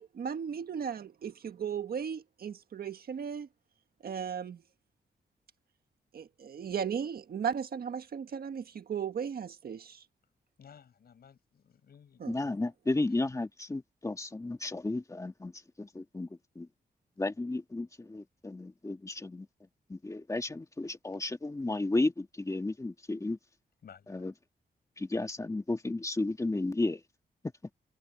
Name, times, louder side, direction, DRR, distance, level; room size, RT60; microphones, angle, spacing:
voice 1, 0.0-3.5 4.0-4.6 6.1-10.0 12.2-12.3, right 7 dB, 65° right, 1.6 m, -36 dB
voice 2, 10.6-12.7 23.8-24.3, left 7 dB, 70° left, 6.7 m, -56 dB
voice 3, 12.3-16.7 17.2-19.5 19.9-23.4 24.1-24.3 25.0-27.0, left 2 dB, 20° left, 1.9 m, -33 dB
wide cardioid pair, 110°, 17 cm